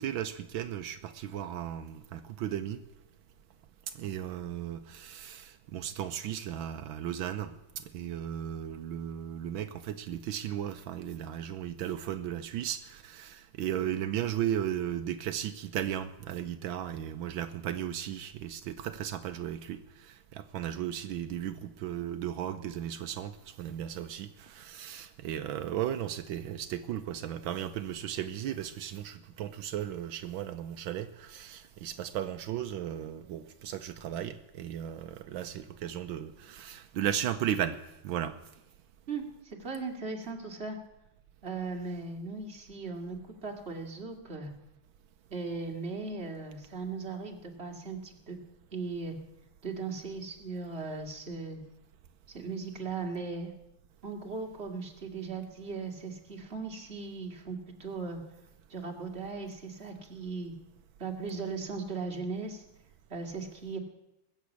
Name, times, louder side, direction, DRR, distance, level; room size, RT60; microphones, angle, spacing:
voice 1, 0.0-2.8 4.0-37.8 38.0-38.3, right 10 dB, 80° right, 8 dB, 1.5 m, -35 dB
voice 2, 39.1-40.8 41.4-43.2 43.4-44.5 45.3-48.4 48.7-49.1 49.6-51.6 52.3-53.5 54.0-58.2 58.7-60.5 61.0-62.6 63.1-63.8, right 4 dB, 30° right, 1 dB, 2.2 m, -38 dB
21.0 x 7.3 x 8.3 m, 0.90 s
omnidirectional pair, 2.2 m